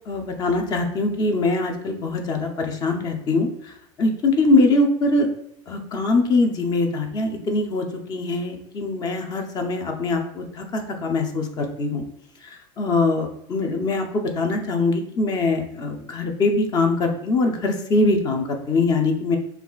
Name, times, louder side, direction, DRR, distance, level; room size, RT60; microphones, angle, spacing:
voice 1, 0.1-3.5 4.0-5.3 5.7-12.0 12.8-19.4, left 2 dB, 25° left, 4 dB, 0.6 m, -22 dB
6.8 x 2.4 x 2.4 m, 0.74 s
supercardioid pair, 150°, 16 cm